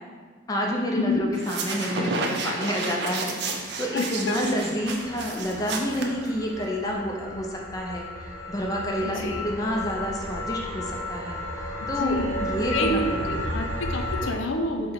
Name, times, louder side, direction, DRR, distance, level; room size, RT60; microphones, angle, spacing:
voice 1, 0.5-8.1 8.5-11.4 11.9-13.5, equal, 20° left, -1 dB, 0.3 m, -29 dB
sound 1, 1.3-6.7, right 3 dB, 60° right, 0.4 m, -31 dB
sound 2, 3.8-14.3, left 1 dB, 50° left, 0.8 m, -33 dB
voice 2, 3.9-4.4 9.0-9.6 11.8-14.9, left 2 dB, 85° left, 4 dB, 0.4 m, -29 dB
4.4 x 2.1 x 3.8 m, 1.5 s
head